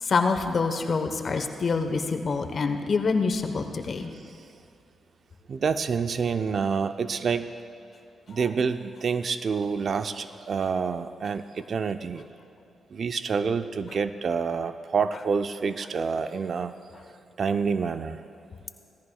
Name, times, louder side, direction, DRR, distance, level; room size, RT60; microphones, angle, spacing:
voice 1, 0.0-4.1, left 4 dB, 50° left, 7 dB, 1.0 m, -26 dB
voice 2, 5.5-7.5 8.3-12.2 12.9-16.7 17.4-18.2, right 5 dB, 60° right, 10 dB, 0.5 m, -27 dB
17.5 x 14.0 x 2.3 m, 2.7 s
cardioid pair, 65°, 0 cm